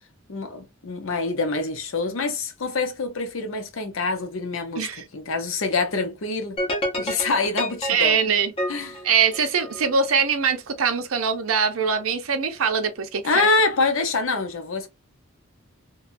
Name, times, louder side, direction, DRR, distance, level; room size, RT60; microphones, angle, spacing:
voice 1, 0.3-6.6 7.0-8.2 8.7-8.9 13.2-14.9, left 3 dB, 70° left, 0.7 m, -25 dB
sound 1, 6.6-9.9, equal, 25° left, 0.7 m, -29 dB
voice 2, 7.9-8.5 9.0-13.5, right 6 dB, 85° right, 0.6 m, -22 dB
2.8 x 2.3 x 2.5 m
head